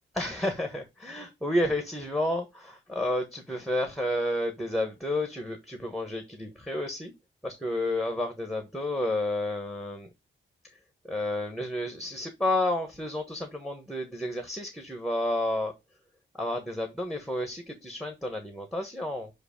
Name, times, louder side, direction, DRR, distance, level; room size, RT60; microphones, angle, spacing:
voice 1, 0.1-7.1 7.4-10.1 11.0-15.7 16.3-19.3, left 1 dB, ahead, 5 dB, 1.1 m, -31 dB
7.7 x 2.6 x 5.1 m, 0.22 s
wide cardioid pair, 115°, 21 cm